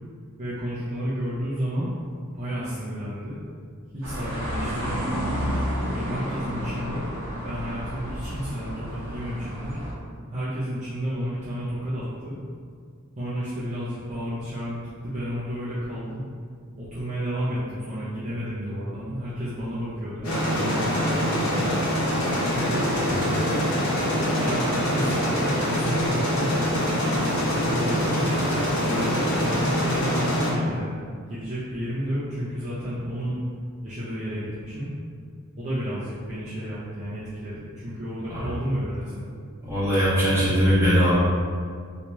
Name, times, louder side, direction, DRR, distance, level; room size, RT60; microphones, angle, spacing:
voice 1, 0.4-1.9 2.3-3.4 3.9-5.4 5.9-9.8 10.3-12.4 13.2-16.2 16.8-21.7 22.4-23.6 24.3-26.5 27.0-28.3 28.8-30.9 31.3-33.4 33.8-34.9 35.6-39.3, equal, 30° right, -11 dB, 0.6 m, -31 dB
sound 1, 4.0-9.9, equal, 65° right, 0.9 m, -31 dB
sound 2, 20.2-30.5, equal, 75° left, 0.8 m, -24 dB
voice 2, 39.6-41.1, equal, 10° right, -12 dB, 1.2 m, -20 dB
3.0 x 2.9 x 3.4 m, 2.1 s
head